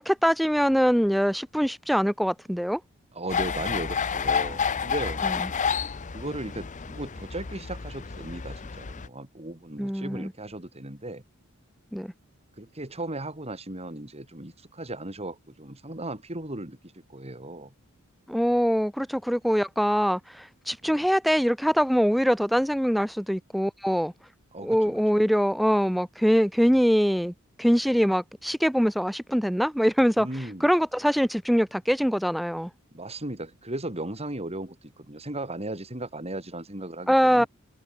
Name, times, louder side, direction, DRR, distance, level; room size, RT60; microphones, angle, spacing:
voice 1, 0.0-2.8 5.2-5.5 9.8-10.3 11.9-12.1 18.3-24.1 24.6-30.3 30.6-32.7 37.1-37.4, equal, ahead, 0.8 m, -23 dB
voice 2, 3.1-5.2 6.1-11.2 12.6-17.7 20.8-20.9 24.5-25.0 30.2-30.7 32.9-37.5, right 1 dB, 30° right, 4.8 m, -36 dB
sound 1, 3.3-9.1, left 6 dB, 35° left, 0.7 m, -30 dB
head